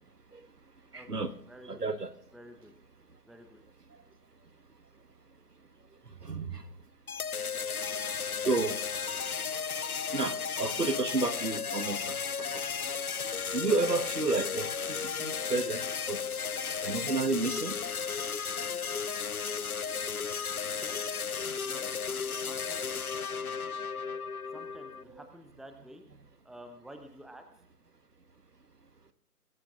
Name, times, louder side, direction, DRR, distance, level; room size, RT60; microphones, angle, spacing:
voice 1, 0.9-1.3 1.6-2.1 6.2-6.7 7.7-7.8 8.4-8.8 10.1-12.6 13.5-16.2 16.8-17.7 21.5-21.6 24.1-24.2 25.1-25.2, right 3 dB, 70° right, 10 dB, 1.4 m, -31 dB
voice 2, 1.5-1.8 2.3-2.7 3.3-3.6 20.6-21.0 21.6-21.9 22.4-22.9 24.5-26.0 26.4-27.4, equal, ahead, 7 dB, 0.7 m, -50 dB
sound 1, 7.1-25.0, left 6 dB, 65° left, 0.6 m, -34 dB
22.0 x 14.0 x 2.5 m, 0.62 s
figure-of-eight pair, 180°, 48 cm